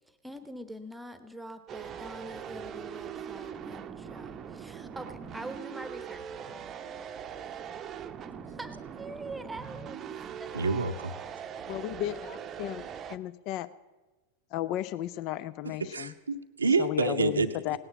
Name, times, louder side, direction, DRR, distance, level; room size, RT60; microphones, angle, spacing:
voice 1, 0.1-6.2 8.5-10.0 10.4-10.7, right 1 dB, 5° right, 11 dB, 1.1 m, -44 dB
sound 1, 1.7-13.2, right 8 dB, 25° right, 0.7 m, -41 dB
voice 2, 10.5-11.1 15.8-17.8, right 4 dB, 75° right, 5 dB, 0.7 m, -28 dB
voice 3, 11.7-12.8 13.1-13.7 14.5-16.1 16.8-17.8, left 14 dB, 40° left, 15 dB, 0.5 m, -34 dB
18.0 x 9.8 x 7.3 m, 1.2 s
figure-of-eight pair, 90°, 0 cm